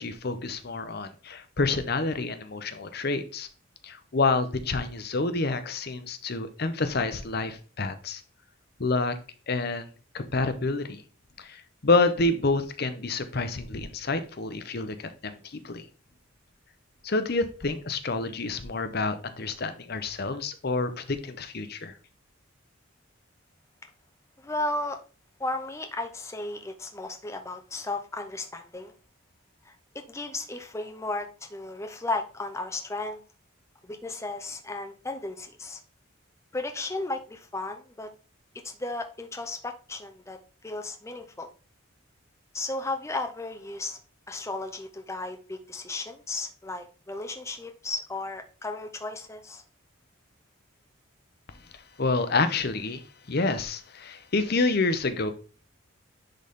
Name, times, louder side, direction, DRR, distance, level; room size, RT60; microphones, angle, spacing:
voice 1, 0.0-3.5 3.8-8.2 8.8-9.2 9.5-9.9 10.1-11.0 11.4-15.8 17.0-21.9 52.0-53.0 53.3-55.3, left 3 dB, 50° left, 10 dB, 0.8 m, -28 dB
voice 2, 24.4-25.0 25.4-28.9 29.7-33.2 33.8-35.8 36.5-38.1 38.6-40.4 40.6-41.5 42.5-44.0 44.3-49.6, left 2 dB, 15° left, 5 dB, 0.5 m, -34 dB
10.5 x 4.1 x 3.6 m, 0.37 s
head